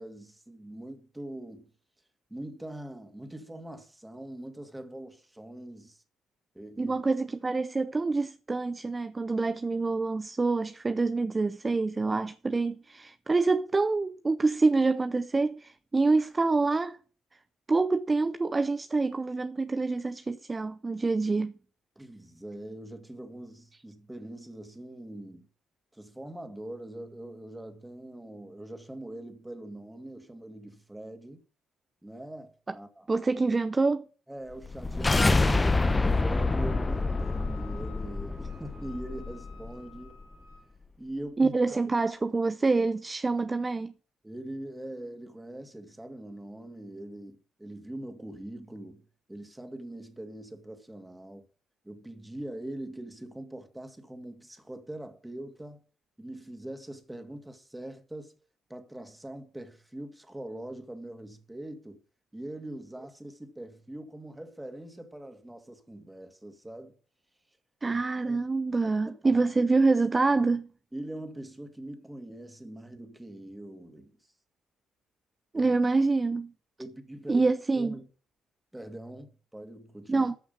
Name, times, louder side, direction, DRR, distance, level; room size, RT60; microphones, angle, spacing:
voice 1, 0.0-1.7 2.3-6.0 6.5-7.0 22.0-25.5 25.9-31.4 32.0-33.3 34.3-40.2 41.0-41.6 44.2-51.5 51.8-55.8 56.2-58.3 58.7-62.0 62.3-67.0 67.9-68.5 68.8-69.4 70.9-74.2 75.6-75.8 76.8-78.1 78.7-80.3, right 1 dB, 10° right, 2.5 m, -42 dB
voice 2, 6.8-17.0 17.7-21.5 32.7-32.8 33.1-34.1 41.4-43.9 67.8-70.7 75.5-76.5 77.3-78.0 80.1-80.4, right 3 dB, 30° right, 0.6 m, -26 dB
sound 1, 34.6-39.7, left 3 dB, 25° left, 1.1 m, -27 dB
Wind instrument woodwind instrument, 35.4-40.7, left 6 dB, 85° right, 4.9 m, -54 dB
13.5 x 6.1 x 5.4 m
hypercardioid pair, 50°, 0 cm